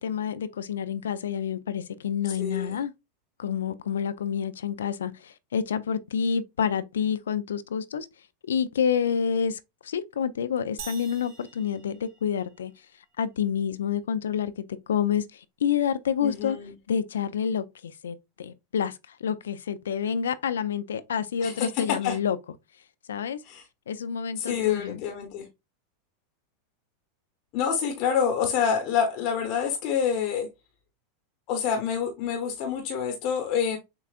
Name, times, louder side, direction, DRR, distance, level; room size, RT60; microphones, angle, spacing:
voice 1, 0.0-2.9 3.4-8.1 8.5-12.7 13.2-16.6 16.9-22.4 23.1-23.4 23.9-25.0, left 7 dB, 80° left, 0.4 m, -28 dB
voice 2, 2.4-2.8 16.2-16.7 21.4-22.2 23.4-23.6 24.4-25.5 27.5-30.5 31.5-33.8, left 7 dB, 55° left, 0.9 m, -27 dB
sound 1, 10.8-12.7, right 6 dB, 60° right, 1.0 m, -45 dB
6.7 x 2.4 x 2.4 m
hypercardioid pair, 95°, 0 cm